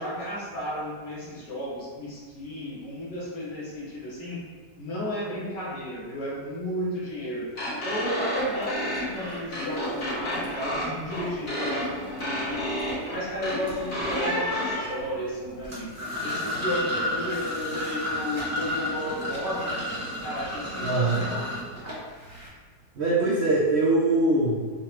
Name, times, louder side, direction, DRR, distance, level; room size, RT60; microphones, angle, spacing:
voice 1, 0.0-4.4 4.8-7.5 7.8-12.8 13.1-15.9 16.2-21.4, equal, 90° left, -6 dB, 1.8 m, -33 dB
sound 1, 7.6-14.8, left 1 dB, 55° left, 1.5 m, -31 dB
sound 2, 8.3-8.6 8.9-9.3 9.7-15.7, left 1 dB, 20° left, 0.9 m, -37 dB
sound 3, 15.7-22.5, left 1 dB, 20° right, 0.4 m, -32 dB
voice 2, 20.8-21.2 22.9-24.7, right 2 dB, 75° right, -6 dB, 0.6 m, -22 dB
5.5 x 2.1 x 3.0 m, 1.5 s
omnidirectional pair, 1.9 m